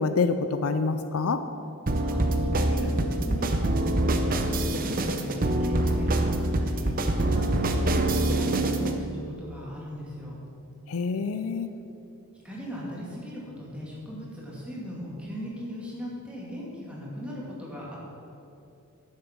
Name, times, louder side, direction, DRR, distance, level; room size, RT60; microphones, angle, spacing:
voice 1, 0.0-1.4 10.9-11.7, left 4 dB, 65° left, 10 dB, 0.5 m, -26 dB
sound 1, 1.9-9.0, right 1 dB, 40° right, 0.7 m, -25 dB
voice 2, 2.0-10.4 12.4-18.0, equal, 5° right, -6 dB, 2.5 m, -38 dB
10.5 x 7.6 x 6.0 m, 2.8 s
head